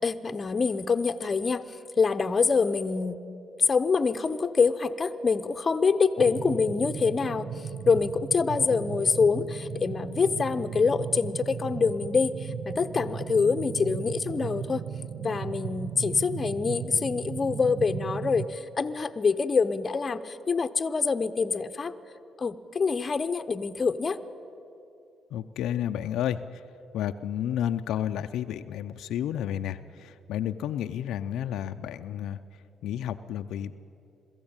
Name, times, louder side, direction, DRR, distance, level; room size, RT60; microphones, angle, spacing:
voice 1, 0.0-3.2 3.7-7.5 7.9-14.8 15.2-21.9 22.4-24.2, left 5 dB, 35° left, 10 dB, 0.9 m, -25 dB
sound 1, 6.2-18.5, right 7 dB, 75° right, 0.7 m, -36 dB
voice 2, 25.3-26.4 26.9-32.4 32.8-33.7, left 10 dB, 85° left, 8 dB, 0.5 m, -31 dB
22.5 x 14.0 x 8.9 m, 2.7 s
cardioid pair, 90°, 0 cm